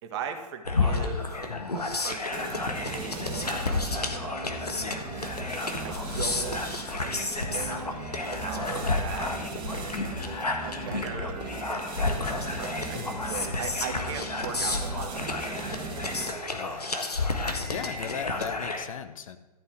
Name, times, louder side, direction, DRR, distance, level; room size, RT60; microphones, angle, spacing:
voice 1, 0.0-1.4 1.7-4.3 5.8-6.6 7.0-15.8, right 7 dB, 45° right, 6 dB, 1.6 m, -40 dB
sound 1, 0.6-18.8, left 3 dB, 80° left, 1.4 m, -31 dB
sound 2, 2.3-16.5, right 3 dB, 25° right, 2.1 m, -38 dB
sound 3, 2.6-18.5, left 1 dB, 20° left, 2.7 m, -51 dB
voice 2, 16.5-17.0 17.7-19.4, left 7 dB, 55° left, 10 dB, 0.9 m, -37 dB
13.0 x 5.5 x 7.8 m, 1.1 s
figure-of-eight pair, 105°, 20 cm